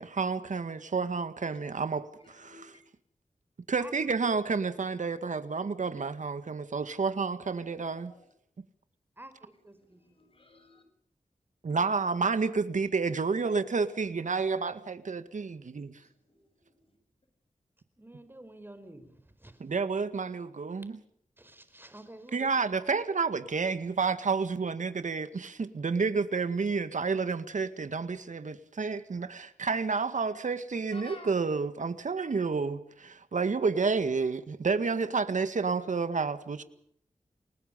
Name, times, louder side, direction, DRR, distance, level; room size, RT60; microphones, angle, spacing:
voice 1, 0.0-2.8 3.7-8.1 8.6-8.7 11.6-16.0 19.6-21.0 22.3-36.6, right 4 dB, 70° right, 1.9 m, -30 dB
voice 2, 2.2-2.8 7.6-8.3 9.8-10.8 15.9-16.5 16.9-17.0 30.9-31.3 33.7-33.8 35.6-36.7, left 2 dB, 45° left, 7.1 m, -53 dB
voice 3, 9.2-10.2 18.0-19.6 21.4-22.5, right 1 dB, 15° right, 4.7 m, -50 dB
29.5 x 20.0 x 5.4 m
wide cardioid pair, 80°, 13 cm